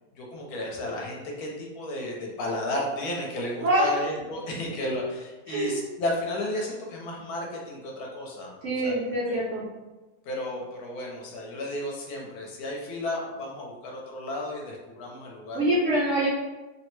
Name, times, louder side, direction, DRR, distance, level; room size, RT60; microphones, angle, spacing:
voice 1, 0.2-8.6 8.8-9.0 9.3-9.4 10.2-15.6, left 1 dB, 70° left, -1 dB, 1.1 m, -33 dB
voice 2, 3.6-3.9 5.5-5.7 8.6-9.7 15.5-16.3, right 1 dB, 65° right, -6 dB, 0.8 m, -25 dB
3.1 x 2.0 x 3.0 m, 1.2 s
omnidirectional pair, 1.7 m